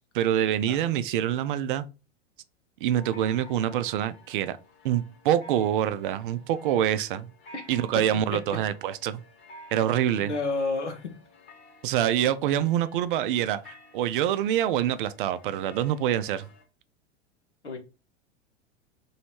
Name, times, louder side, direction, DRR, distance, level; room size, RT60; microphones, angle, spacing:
voice 1, 0.1-1.9 2.8-4.6 4.8-7.3 7.7-9.2 9.7-10.3 11.8-16.5, right 11 dB, 50° right, 0.4 m, -26 dB
sound 1, 3.0-16.6, equal, 30° left, 1.0 m, -52 dB
voice 2, 10.1-11.1 17.6-17.8, left 3 dB, 85° left, 1.0 m, -30 dB
3.0 x 2.8 x 4.3 m
figure-of-eight pair, 90°, 34 cm